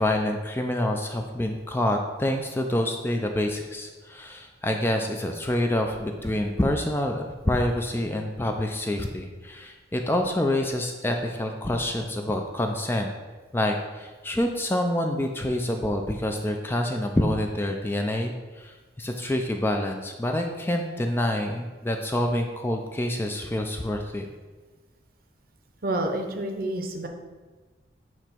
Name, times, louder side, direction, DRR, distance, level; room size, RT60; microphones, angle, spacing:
voice 1, 0.0-13.1 13.5-24.3, left 1 dB, 10° left, 3 dB, 0.4 m, -27 dB
voice 2, 25.8-27.1, right 1 dB, 50° right, 4 dB, 0.7 m, -28 dB
7.9 x 3.0 x 4.4 m, 1.3 s
head